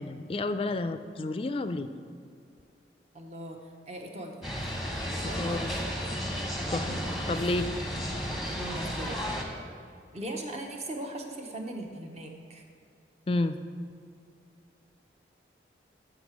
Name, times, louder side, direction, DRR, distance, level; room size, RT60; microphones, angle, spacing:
voice 1, 0.0-1.9 5.4-5.7 6.7-6.9 7.3-7.7 13.3-13.6, left 2 dB, 30° left, 10 dB, 0.3 m, -30 dB
voice 2, 3.1-4.5 5.2-6.1 6.8-7.2 8.6-9.2 10.1-12.6, right 1 dB, 35° right, 2 dB, 0.9 m, -39 dB
sound 1, 4.4-9.4, equal, ahead, 0.9 m, -33 dB
7.2 x 6.7 x 6.1 m, 2.4 s
head